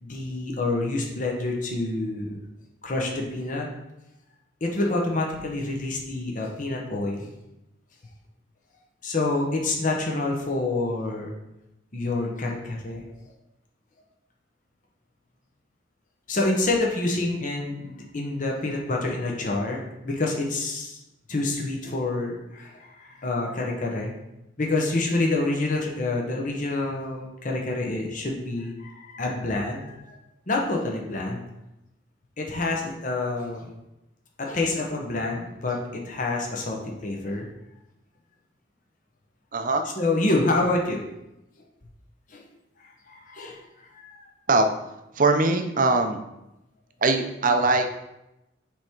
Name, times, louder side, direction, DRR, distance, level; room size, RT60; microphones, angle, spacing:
voice 1, 0.0-2.4 2.8-3.7 4.6-7.3 9.0-11.3 11.9-13.0 16.3-21.0 21.3-24.1 24.6-30.2 30.5-31.4 32.4-33.7 34.4-35.8 36.0-37.5 40.0-41.0 42.3-42.4 42.8-44.2, left 2 dB, 45° left, 0 dB, 1.1 m, -27 dB
voice 2, 39.5-39.9 44.5-44.7 45.2-46.2 47.0-48.0, right 3 dB, 45° right, 6 dB, 0.6 m, -21 dB
7.5 x 3.6 x 4.5 m, 0.91 s
head